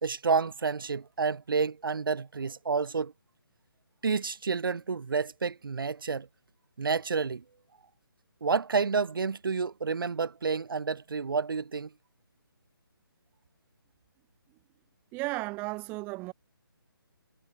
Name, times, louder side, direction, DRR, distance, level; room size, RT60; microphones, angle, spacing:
voice 1, 0.0-3.1 4.0-6.3 6.8-7.4 8.4-11.9, right 5 dB, 65° right, 2.3 m, -29 dB
voice 2, 15.1-16.3, right 24 dB, 15° right, 0.9 m, -34 dB
figure-of-eight pair, 155°, 12 cm